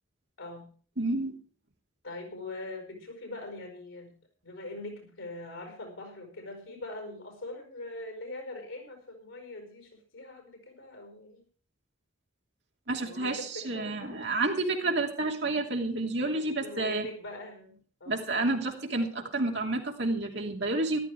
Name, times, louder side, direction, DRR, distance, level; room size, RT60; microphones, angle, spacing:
voice 1, 0.4-0.7 2.0-4.1 4.4-11.4 13.0-14.2 16.3-18.3, left 2 dB, 90° left, 5 dB, 4.8 m, -42 dB
voice 2, 1.0-1.4 12.9-17.1 18.1-21.0, right 2 dB, 60° right, 2 dB, 2.9 m, -30 dB
14.0 x 12.5 x 4.7 m, 0.41 s
head